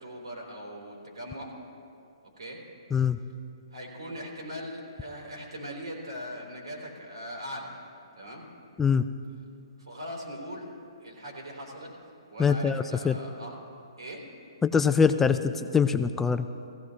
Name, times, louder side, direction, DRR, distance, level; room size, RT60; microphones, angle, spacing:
voice 1, 0.0-1.5 2.4-2.6 3.7-7.8 8.2-8.4 9.8-10.7 11.0-11.9 12.3-13.6 14.0-14.3, equal, 85° right, -1 dB, 3.6 m, -40 dB
voice 2, 12.4-13.2 14.6-16.5, left 6 dB, 10° left, 10 dB, 0.3 m, -23 dB
16.5 x 15.5 x 3.2 m, 2.5 s
hypercardioid pair, 135°, 3 cm